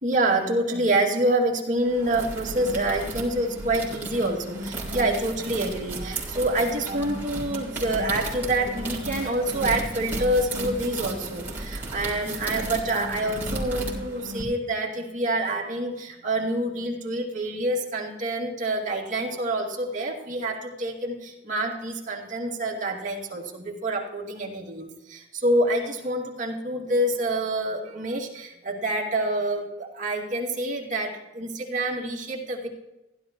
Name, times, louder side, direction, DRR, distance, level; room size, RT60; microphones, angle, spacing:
voice 1, 0.0-32.7, right 1 dB, 40° right, -2 dB, 2.3 m, -27 dB
sound 1, 1.8-14.4, right 1 dB, 10° right, 3.1 m, -34 dB
16.0 x 11.5 x 3.1 m, 0.97 s
head